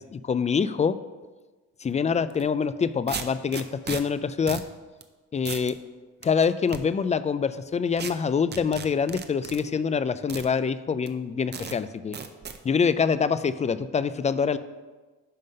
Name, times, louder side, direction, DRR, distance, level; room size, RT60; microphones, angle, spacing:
voice 1, 0.1-1.0 1.8-4.6 5.3-5.8 6.2-12.2 12.6-14.6, left 6 dB, 25° left, 14 dB, 0.4 m, -25 dB
sound 1, 2.3-2.4 3.1-4.0 4.5-4.7 5.0-5.1 5.4-5.7 6.2-6.8 8.0-8.1 8.5-9.6 10.3-10.5 11.1-11.2 11.5-11.8 12.1-12.6, right 6 dB, 35° right, 0.7 m, -35 dB
11.0 x 3.7 x 5.3 m, 1.3 s
cardioid pair, 90°, 30 cm